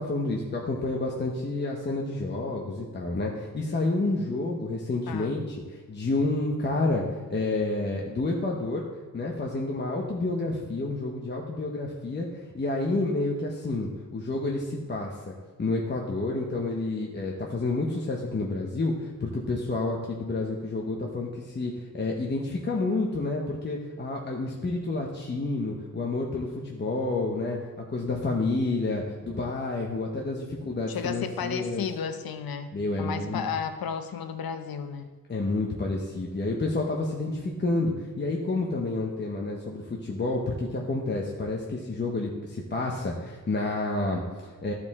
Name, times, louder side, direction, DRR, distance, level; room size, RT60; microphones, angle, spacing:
voice 1, 0.0-8.8 9.1-31.8 32.7-33.4 35.3-44.7, left 2 dB, 30° left, -1 dB, 0.9 m, -29 dB
voice 2, 5.1-5.4 30.9-32.7 33.0-35.1, left 7 dB, 85° left, 8 dB, 0.8 m, -33 dB
14.0 x 5.0 x 3.6 m, 1.4 s
wide cardioid pair, 155°, 35 cm